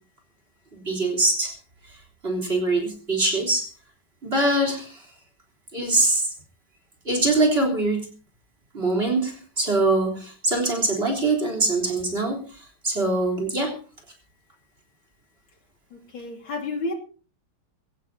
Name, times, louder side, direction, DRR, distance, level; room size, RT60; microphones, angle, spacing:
voice 1, 0.7-1.5 2.2-3.7 4.2-5.0 5.7-6.3 7.1-8.1 8.7-13.8, right 2 dB, 30° right, 3 dB, 3.8 m, -23 dB
voice 2, 15.9-16.9, left 2 dB, 75° left, 0 dB, 3.4 m, -31 dB
22.5 x 16.5 x 2.8 m, 0.36 s
omnidirectional pair, 2.2 m